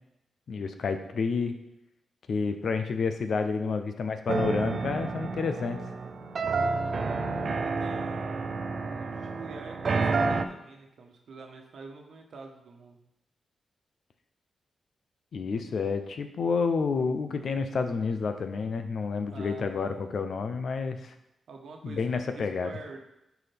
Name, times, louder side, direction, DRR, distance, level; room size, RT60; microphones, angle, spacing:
voice 1, 0.5-1.5 2.3-5.8 15.3-21.1 21.8-22.7, left 5 dB, 70° left, 7 dB, 0.7 m, -29 dB
sound 1, 4.3-10.5, right 4 dB, 60° right, 0.5 m, -30 dB
voice 2, 6.3-13.0 19.3-20.2 21.5-22.1 22.3-23.0, right 4 dB, 75° right, 2 dB, 1.2 m, -47 dB
9.5 x 4.8 x 3.5 m, 0.86 s
cardioid pair, 60°, 0 cm